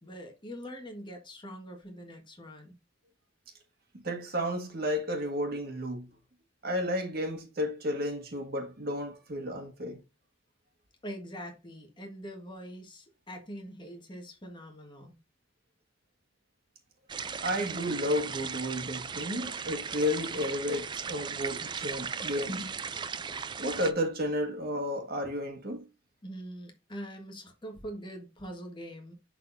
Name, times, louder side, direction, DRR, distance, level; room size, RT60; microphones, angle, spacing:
voice 1, 0.0-2.7 11.0-15.1 26.2-29.1, equal, 25° left, 1.5 m, -43 dB
voice 2, 4.0-6.1 6.6-10.0 17.4-22.7 23.6-25.8, equal, 55° right, 1.7 m, -32 dB
sound 1, 17.1-23.9, right 6 dB, 25° right, 0.3 m, -37 dB
11.0 x 4.1 x 2.6 m
head